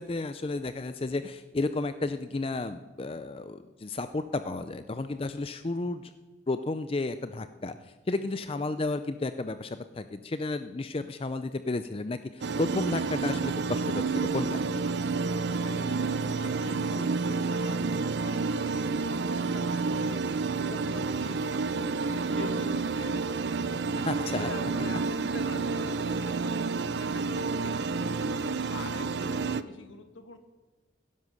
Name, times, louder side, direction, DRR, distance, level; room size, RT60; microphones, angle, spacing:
voice 1, 0.0-6.1 6.5-14.6 24.0-24.5, left 2 dB, 30° left, 11 dB, 0.4 m, -32 dB
sound 1, 12.4-29.6, right 4 dB, 60° right, 0.5 m, -29 dB
voice 2, 14.8-18.7 19.0-30.4, left 3 dB, 85° left, 7 dB, 1.5 m, -46 dB
17.0 x 11.0 x 6.3 m, 1.3 s
head